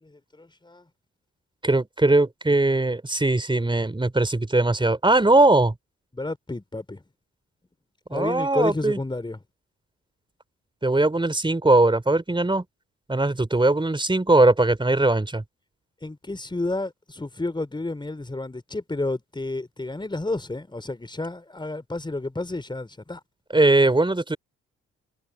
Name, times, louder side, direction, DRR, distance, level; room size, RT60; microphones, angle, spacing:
voice 1, 0.0-0.8 6.1-7.0 8.1-9.4 16.0-23.2, left 2 dB, 15° left, 4.1 m, -31 dB
voice 2, 1.6-5.7 8.1-9.0 10.8-12.6 13.1-15.4 23.5-24.4, right 2 dB, 15° right, 4.1 m, -20 dB
figure-of-eight pair, 45°, 35 cm